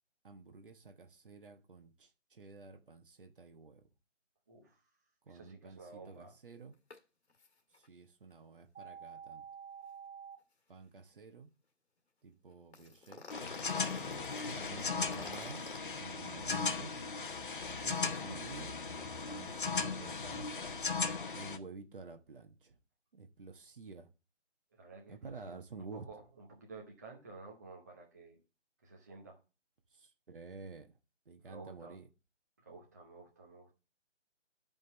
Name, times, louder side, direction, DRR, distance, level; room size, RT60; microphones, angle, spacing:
voice 1, 0.2-3.8 5.3-6.8 7.8-9.5 10.7-11.5 12.2-13.2 14.5-15.6 16.0-17.0 17.8-18.8 19.3-20.7 21.3-22.7 23.1-24.1 25.1-26.0 29.9-30.9 31.3-32.1, right 4 dB, 45° right, 1.2 m, -50 dB
voice 2, 4.5-4.8 5.3-6.3 13.9-14.3 24.7-28.4 28.8-29.4 31.4-32.0 32.6-33.8, right 3 dB, 15° right, 0.8 m, -53 dB
sound 1, 6.9-7.0 7.3-7.5 7.7-7.9 12.7-15.8, left 4 dB, 60° left, 1.7 m, -49 dB
sound 2, 8.7-10.4, right 7 dB, 80° right, 2.0 m, -48 dB
sound 3, 13.3-21.6, left 4 dB, 45° left, 0.9 m, -37 dB
11.5 x 5.3 x 3.9 m
figure-of-eight pair, 165°, 37 cm